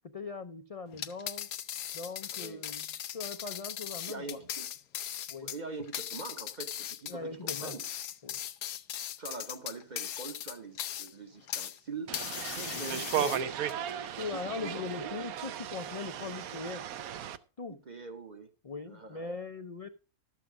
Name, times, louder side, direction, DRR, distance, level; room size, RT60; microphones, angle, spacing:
voice 1, 0.1-1.5 1.9-4.4 5.3-5.5 7.1-7.8 8.2-8.4 12.7-13.3 14.2-16.8 17.6-17.8 18.6-19.9, left 4 dB, 45° left, 0.5 m, -40 dB
sound 1, 0.9-11.8 12.1-13.7, left 11 dB, 85° left, 1.2 m, -39 dB
voice 2, 2.4-2.7 4.1-4.7 5.4-7.9 9.2-12.2 12.5-13.5 14.0-15.2 17.7-18.5 18.9-19.2, right 3 dB, 35° right, 1.0 m, -43 dB
newjersey OC wundertickets, 12.1-17.4, right 10 dB, 80° right, 1.1 m, -36 dB
12.5 x 7.5 x 4.7 m
omnidirectional pair, 1.5 m